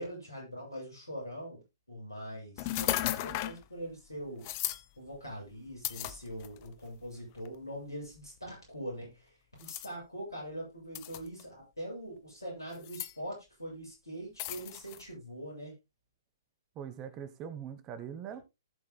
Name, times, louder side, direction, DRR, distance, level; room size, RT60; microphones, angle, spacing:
voice 1, 0.0-1.6 1.9-4.4 5.0-9.3 9.6-15.7, equal, 80° left, 7.8 m, -42 dB
sound 1, 2.6-3.6 4.4-4.8 5.8-6.7 7.4-7.6 9.6-9.9 10.9-11.4 12.7-13.1 14.4-15.0, left 15 dB, 35° left, 0.8 m, -35 dB
voice 2, 16.7-18.4, right 8 dB, 25° right, 1.2 m, -42 dB
19.0 x 6.5 x 2.3 m
figure-of-eight pair, 120°, 2 cm